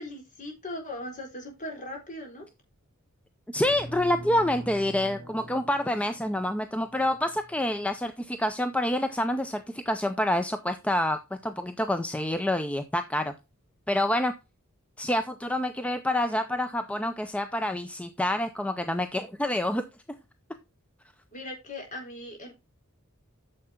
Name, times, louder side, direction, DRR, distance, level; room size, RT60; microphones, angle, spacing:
voice 1, 0.0-2.5 21.3-22.5, left 1 dB, 35° left, 2 dB, 4.0 m, -39 dB
voice 2, 3.5-13.3 13.9-14.3 15.0-19.9, left 1 dB, 5° left, 9 dB, 0.5 m, -27 dB
sound 1, 3.6-8.0, equal, 30° right, 2.4 m, -44 dB
9.4 x 6.8 x 3.6 m, 0.26 s
head